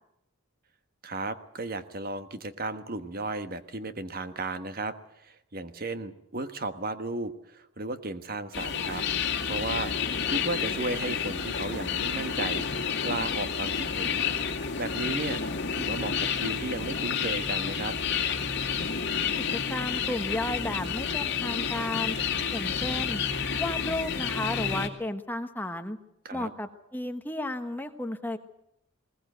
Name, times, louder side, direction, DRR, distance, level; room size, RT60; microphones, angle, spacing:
voice 1, 1.0-4.9 5.2-9.0 9.4-14.2 14.7-15.4 15.7-17.9 26.2-26.5, right 2 dB, 45° right, 10 dB, 1.3 m, -34 dB
sound 1, 8.5-24.9, left 6 dB, 55° left, 2.4 m, -30 dB
voice 2, 19.4-22.2 22.5-23.2 23.6-26.0 26.3-28.4, left 1 dB, 10° left, 7 dB, 1.2 m, -33 dB
20.5 x 19.5 x 8.0 m, 0.79 s
head